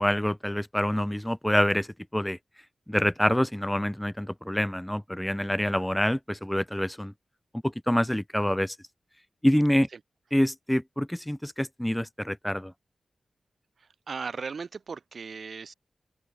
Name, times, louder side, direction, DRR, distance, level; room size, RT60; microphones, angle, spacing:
voice 1, 0.0-2.4 2.9-7.1 7.6-8.8 9.4-9.9 10.3-12.7, equal, 5° left, 1.7 m, -26 dB
voice 2, 13.8-15.7, right 5 dB, 65° right, 7.9 m, -37 dB
open air
wide cardioid pair, 90°, 0 cm